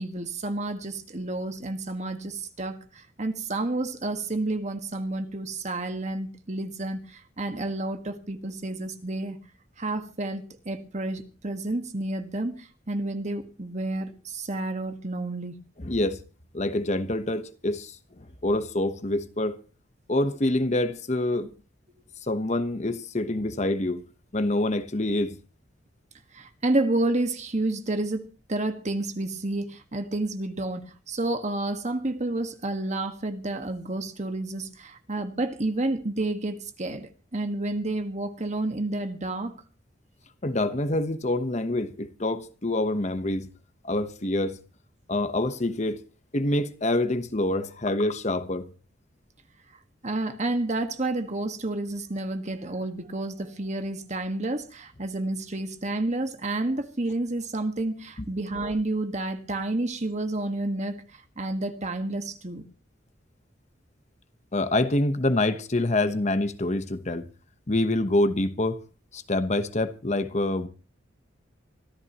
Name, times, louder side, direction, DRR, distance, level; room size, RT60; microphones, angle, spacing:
voice 1, 0.0-9.4 9.8-15.6 26.3-39.5 50.0-61.0 61.4-62.6, right 2 dB, 35° right, 1.6 m, -30 dB
voice 2, 15.8-16.2 16.5-19.6 20.1-21.5 22.2-24.0 24.3-25.4 40.4-43.5 43.8-44.6 45.1-46.0 46.3-48.7 64.5-67.3 67.7-68.8 69.1-70.7, left 1 dB, 35° left, 1.1 m, -26 dB
24.5 x 14.5 x 3.0 m
head